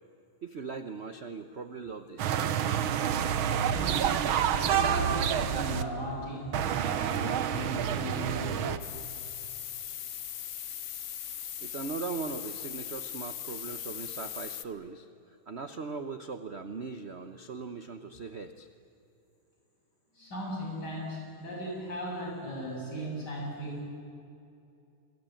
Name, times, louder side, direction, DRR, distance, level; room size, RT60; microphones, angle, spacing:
voice 1, 0.4-2.4 11.6-15.1 15.5-18.7, right 4 dB, 50° right, 9 dB, 0.8 m, -39 dB
sound 1, 2.2-5.8 6.5-8.8, right 9 dB, 75° right, 1.8 m, -28 dB
voice 2, 3.7-4.1 4.5-8.8 20.1-23.8, equal, 50° left, -2 dB, 8.1 m, -37 dB
sound 2, 8.8-14.6, left 10 dB, 75° left, 0.7 m, -39 dB
27.0 x 22.0 x 9.1 m, 2.6 s
omnidirectional pair, 2.3 m